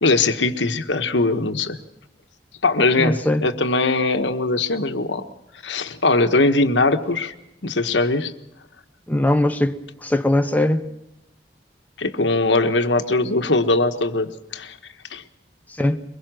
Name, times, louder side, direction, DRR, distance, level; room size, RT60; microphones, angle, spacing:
voice 1, 0.0-1.8 2.6-5.3 5.6-7.3 7.6-8.3 12.0-14.8 15.1-15.2, left 3 dB, 80° left, 1.3 m, -20 dB
voice 2, 3.0-3.4 9.1-9.7 10.0-10.8 15.8-16.0, left 1 dB, 10° left, 0.8 m, -20 dB
23.0 x 21.5 x 6.2 m
head